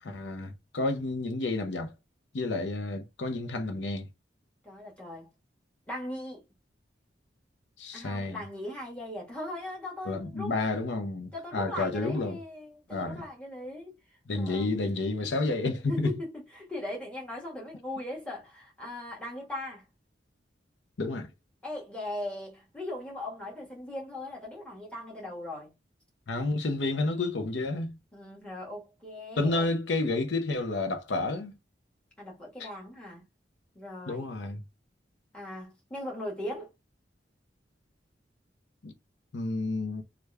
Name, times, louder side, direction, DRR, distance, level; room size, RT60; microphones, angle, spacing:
voice 1, 0.0-1.9 2.3-4.1 7.8-8.4 10.0-12.4 12.9-13.2 14.3-16.1 21.0-21.3 26.3-28.0 29.4-31.5 32.6-32.7 34.1-34.6 38.8-38.9 39.3-40.0, left 2 dB, 80° left, 0.6 m, -30 dB
voice 2, 4.6-5.3 5.9-6.4 7.9-10.5 11.3-13.9 14.3-14.7 15.8-16.3 16.5-19.8 21.6-25.7 28.1-29.7 32.2-33.2 33.7-34.3 35.3-36.7, left 1 dB, 5° left, 1.5 m, -39 dB
3.4 x 2.4 x 3.2 m
head